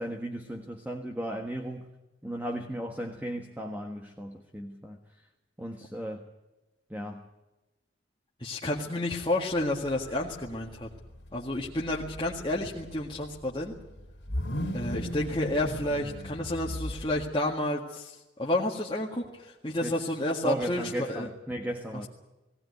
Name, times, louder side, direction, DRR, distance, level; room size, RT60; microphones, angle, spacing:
voice 1, 0.0-1.9 2.2-5.0 5.6-6.2 6.9-7.2 19.8-20.1 20.4-22.1, right 1 dB, 10° right, 3 dB, 1.4 m, -35 dB
voice 2, 8.4-10.9 11.3-13.7 14.7-21.3, left 1 dB, 25° left, -4 dB, 1.8 m, -30 dB
sound 1, 9.5-17.3, equal, 65° left, 3.0 m, -38 dB
19.0 x 18.0 x 9.5 m, 1.0 s
head